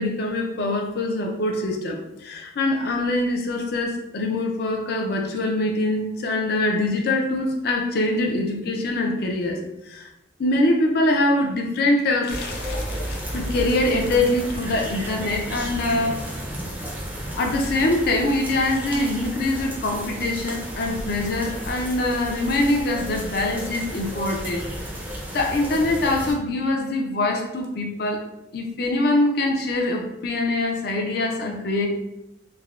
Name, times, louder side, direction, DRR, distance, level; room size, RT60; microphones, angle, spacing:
voice 1, 0.0-9.6 9.9-10.1 10.4-16.2 17.3-24.6 25.3-28.2 28.5-31.9, left 2 dB, 55° left, 2 dB, 0.4 m, -24 dB
sound 1, 12.3-26.3, equal, 10° right, 0.4 m, -33 dB
3.3 x 2.0 x 2.4 m, 0.89 s
head